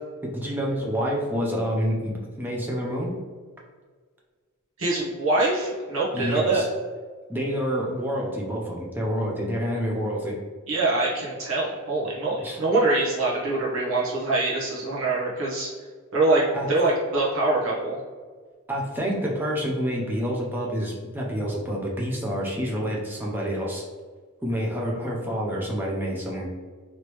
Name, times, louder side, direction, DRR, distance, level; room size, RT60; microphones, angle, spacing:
voice 1, 0.2-3.1 6.1-6.7 7.3-10.3 12.4-12.6 16.5-16.7 18.7-23.8 24.4-26.5, equal, 10° right, -2 dB, 0.6 m, -28 dB
voice 2, 4.8-6.6 10.7-15.7 16.1-18.0, right 2 dB, 70° right, -6 dB, 1.0 m, -24 dB
3.2 x 3.0 x 3.0 m, 1.5 s
head